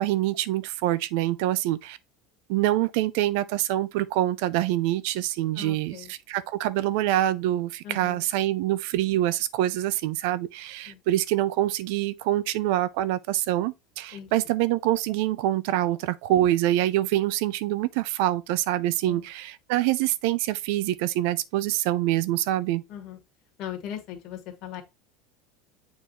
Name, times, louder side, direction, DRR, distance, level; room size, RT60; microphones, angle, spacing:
voice 1, 0.0-2.0 2.5-22.8, right 14 dB, 75° right, 0.5 m, -25 dB
voice 2, 5.6-6.1 7.8-8.3 10.9-11.0 14.1-14.3 19.0-19.3 22.9-23.2 23.6-24.8, left 10 dB, 55° left, 1.8 m, -39 dB
7.1 x 4.3 x 3.1 m
supercardioid pair, 125°, 0 cm